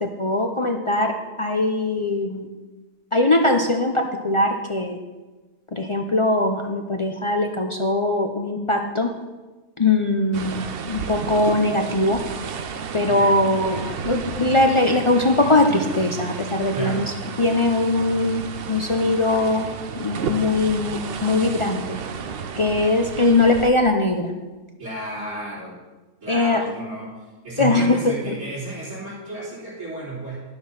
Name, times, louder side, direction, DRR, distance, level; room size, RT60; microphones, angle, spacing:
voice 1, 0.0-2.5 3.1-5.0 5.7-9.1 9.8-12.2 12.9-13.8 14.0-17.1 17.4-18.4 18.7-19.7 20.0-22.0 22.6-24.3 26.3-26.6 27.6-28.0 28.3-28.4, left 2 dB, 45° left, 3 dB, 0.3 m, -21 dB
sound 1, 10.3-23.7, right 6 dB, 55° right, 0.7 m, -32 dB
voice 2, 16.7-17.1 24.8-25.8 26.2-27.1 27.4-30.4, right 2 dB, 70° right, -8 dB, 3.9 m, -32 dB
11.5 x 6.9 x 5.6 m, 1.2 s
omnidirectional pair, 1.6 m